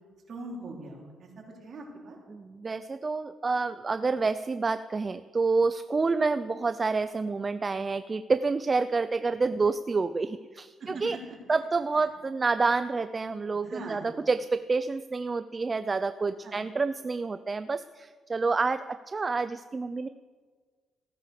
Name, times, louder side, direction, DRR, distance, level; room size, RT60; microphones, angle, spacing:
voice 1, 0.3-2.2 10.8-11.4 13.5-14.1 16.4-16.6, right 2 dB, 50° right, -2 dB, 4.4 m, -42 dB
voice 2, 2.3-11.2 11.5-20.1, right 4 dB, 30° right, 12 dB, 0.5 m, -28 dB
16.0 x 10.0 x 6.7 m, 1.6 s
cardioid pair, 90°, 0 cm